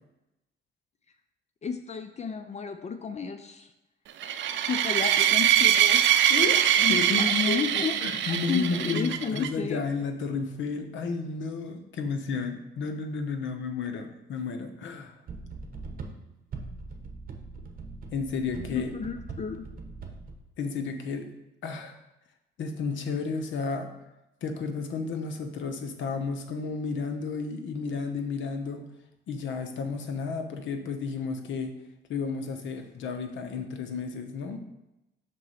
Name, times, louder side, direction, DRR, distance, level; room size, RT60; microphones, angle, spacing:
voice 1, 1.6-3.7 4.7-6.1 6.8-9.8 18.7-19.7, left 6 dB, 35° left, 8 dB, 0.5 m, -32 dB
sound 1, 4.2-9.5, right 10 dB, 70° right, 0.5 m, -23 dB
voice 2, 6.3-6.6 6.9-7.6 8.0-15.1 18.1-18.9 20.6-21.3 21.6-22.0 22.6-23.9 24.4-28.9 29.3-31.7 32.1-34.6, left 4 dB, 75° left, 6 dB, 0.9 m, -32 dB
sound 2, 15.3-20.4, right 4 dB, 45° right, 1.0 m, -41 dB
6.0 x 3.9 x 4.9 m, 0.93 s
cardioid pair, 90°, 20 cm